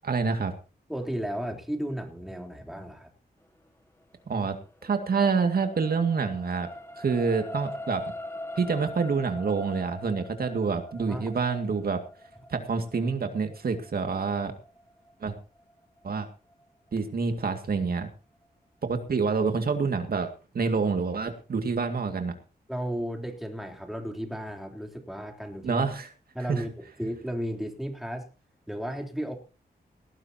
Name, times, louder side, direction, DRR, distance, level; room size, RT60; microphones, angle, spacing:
voice 1, 0.0-0.5 4.3-4.6 4.8-6.7 7.0-8.0 8.6-12.0 12.5-14.5 15.2-15.3 16.0-16.3 16.9-18.1 18.8-22.4 25.6-26.1 26.5-26.6, right 5 dB, 65° right, 6 dB, 2.1 m, -27 dB
voice 2, 0.9-3.1 11.1-11.3 22.7-25.9 26.4-28.3 28.7-29.4, equal, ahead, 3 dB, 3.6 m, -34 dB
sound 1, 4.4-16.9 17.4-17.5, left 1 dB, 15° left, 1.7 m, -42 dB
18.5 x 15.5 x 2.9 m, 0.34 s
wide cardioid pair, 95°, 17 cm